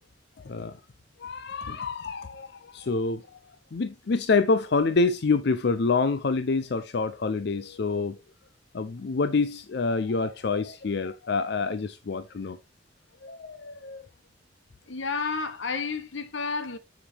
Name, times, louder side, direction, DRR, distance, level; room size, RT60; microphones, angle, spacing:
voice 1, 1.2-3.2 3.7-8.2 8.7-12.6 13.2-14.0, left 4 dB, 60° left, 0.5 m, -27 dB
voice 2, 14.9-16.8, left 4 dB, 75° left, 1.1 m, -31 dB
7.2 x 7.0 x 3.3 m
head